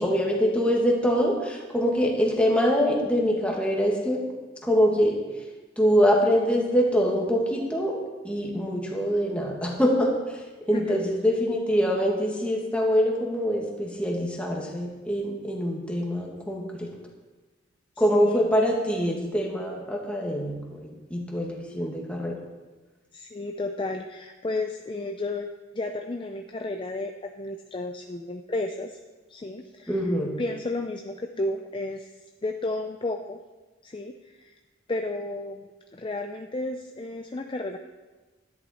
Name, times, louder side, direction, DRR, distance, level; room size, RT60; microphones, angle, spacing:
voice 1, 0.0-4.2 4.6-5.2 5.8-7.9 8.2-10.1 10.7-16.9 18.0-22.4 29.9-30.4, equal, 5° left, -1 dB, 1.7 m, -24 dB
voice 2, 23.1-29.0 29.3-32.1 32.4-33.4 33.8-34.6 34.9-37.8, left 2 dB, 25° left, 4 dB, 0.5 m, -32 dB
11.0 x 10.5 x 4.2 m, 1.2 s
head